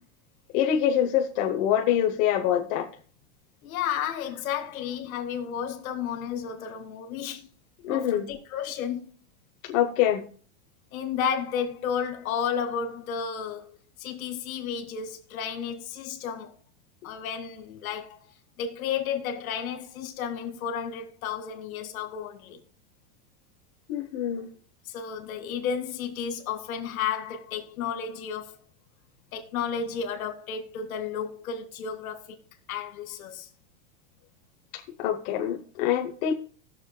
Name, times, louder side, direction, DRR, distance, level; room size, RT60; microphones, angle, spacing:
voice 1, 0.5-2.9 7.8-8.3 9.6-10.2 23.9-24.5 34.7-36.3, left 10 dB, 40° left, 0.9 m, -25 dB
voice 2, 3.6-7.5 7.9-9.1 10.9-16.5 17.0-18.3 18.6-22.6 24.9-28.7 29.3-32.4 32.7-33.5, left 7 dB, 80° left, 2.1 m, -32 dB
20.0 x 6.8 x 2.2 m
supercardioid pair, 165°, 41 cm